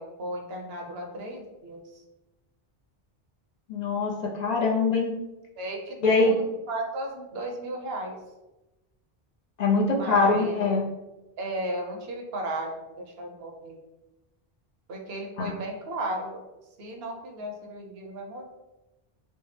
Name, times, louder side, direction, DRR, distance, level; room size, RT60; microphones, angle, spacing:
voice 1, 0.0-2.0 5.6-6.4 6.7-8.2 9.9-10.6 11.4-12.7 13.0-13.8 14.9-16.4 16.8-18.4, right 1 dB, 75° right, 2 dB, 0.9 m, -35 dB
voice 2, 3.7-5.2 6.0-6.3 9.6-10.8 15.4-15.5, left 3 dB, 50° left, -1 dB, 0.6 m, -23 dB
3.3 x 2.0 x 3.2 m, 1.0 s
omnidirectional pair, 1.0 m